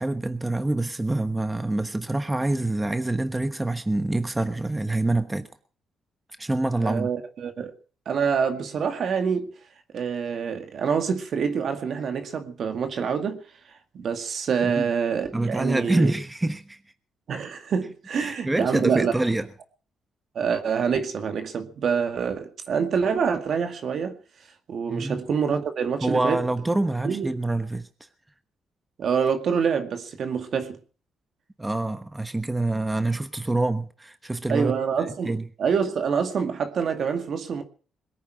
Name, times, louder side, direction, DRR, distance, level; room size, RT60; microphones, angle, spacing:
voice 1, 0.0-5.5 6.4-7.1 14.6-14.9 15.3-16.8 18.2-19.5 24.9-25.2 26.0-27.9 31.6-34.7 35.2-35.4, right 2 dB, 15° right, 1.2 m, -26 dB
voice 2, 6.8-7.7 8.1-9.5 9.9-13.4 13.7-16.1 17.3-19.2 20.3-24.2 24.7-26.4 27.0-27.3 29.0-30.8 34.5-37.6, right 6 dB, 60° right, 2.2 m, -26 dB
21.5 x 9.4 x 6.3 m
cardioid pair, 90°, 0 cm